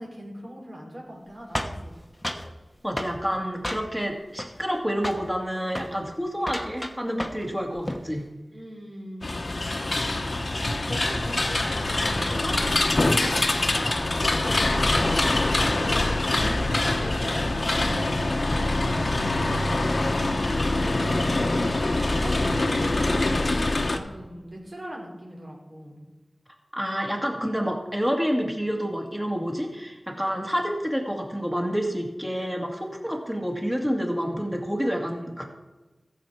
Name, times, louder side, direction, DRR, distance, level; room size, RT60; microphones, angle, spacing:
voice 1, 0.0-2.0 5.9-6.0 8.5-10.1 10.6-14.0 14.4-15.1 15.6-21.7 22.1-23.5 23.8-26.0, right 1 dB, 55° right, -2 dB, 3.8 m, -40 dB
sound 1, 1.6-2.5 3.0-3.2 3.6-4.1 4.4-4.8 5.0-5.3 5.7-5.9 6.4-7.5 7.8-8.1, left 1 dB, 15° left, 1.1 m, -32 dB
voice 2, 2.8-8.2 26.7-35.4, equal, 10° right, 1 dB, 2.3 m, -28 dB
sound 2, 9.2-24.0, left 2 dB, 60° left, 0.9 m, -24 dB
14.5 x 7.2 x 4.9 m, 1.1 s
wide cardioid pair, 50°, 0 cm